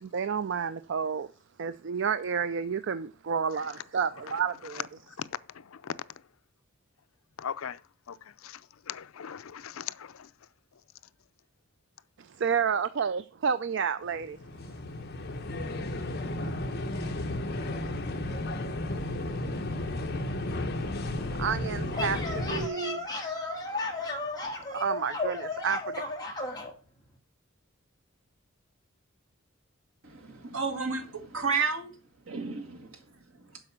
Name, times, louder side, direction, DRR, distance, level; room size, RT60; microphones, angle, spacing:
voice 1, 0.0-1.3 1.6-4.8 12.2-14.4 21.4-23.0 24.7-26.0, right 6 dB, 60° right, 0.4 m, -30 dB
voice 2, 5.5-6.0 7.4-7.8 8.1-8.2 8.4-8.6 8.9-10.3, left 8 dB, 80° left, 0.5 m, -38 dB
sound 1, 14.0-22.7, left 1 dB, 50° left, 1.2 m, -33 dB
sound 2, 22.0-26.7, left 3 dB, 20° left, 1.6 m, -34 dB
voice 3, 30.0-32.0 32.3-33.1 33.3-33.6, right 5 dB, 75° right, 1.8 m, -32 dB
7.8 x 5.0 x 7.4 m
head